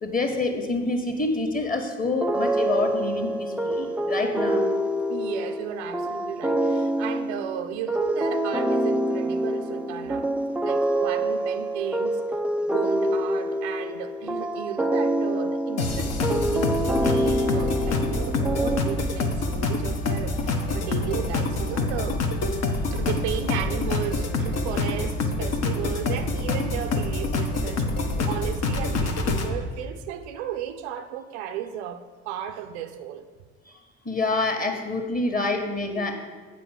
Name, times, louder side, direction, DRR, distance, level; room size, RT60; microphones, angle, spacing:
voice 1, 0.0-4.6 17.1-17.2 34.0-36.1, left 3 dB, 25° left, 1.7 m, -27 dB
sound 1, 2.2-19.4, right 1 dB, 5° right, 0.3 m, -26 dB
voice 2, 5.1-10.3 10.6-12.2 12.6-22.2 22.5-22.6 22.9-27.9 28.2-33.3, right 9 dB, 70° right, 0.6 m, -34 dB
sound 2, 15.8-29.5, left 2 dB, 45° left, 1.1 m, -26 dB
8.4 x 4.8 x 7.5 m
figure-of-eight pair, 50°, 35 cm